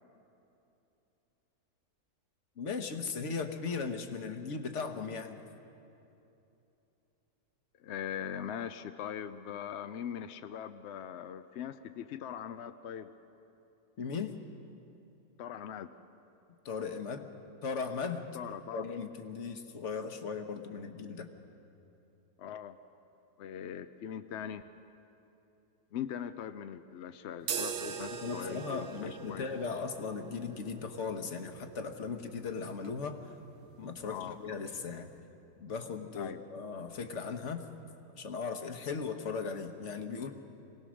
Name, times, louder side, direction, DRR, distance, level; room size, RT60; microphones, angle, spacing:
voice 1, 2.6-5.4 14.0-14.3 16.6-17.3 17.6-18.2 18.7-21.3 28.2-33.2 33.8-35.1 35.6-37.6 38.1-40.3, left 5 dB, 50° left, 7 dB, 1.3 m, -37 dB
voice 2, 7.8-13.1 15.4-15.9 18.3-18.8 22.4-22.8 23.4-24.6 25.9-29.5 34.0-34.4 36.2-36.4, left 9 dB, 70° left, 10 dB, 0.6 m, -41 dB
sound 1, 27.4-35.2, right 7 dB, 55° right, 0.9 m, -43 dB
24.0 x 18.0 x 6.3 m, 2.9 s
omnidirectional pair, 1.7 m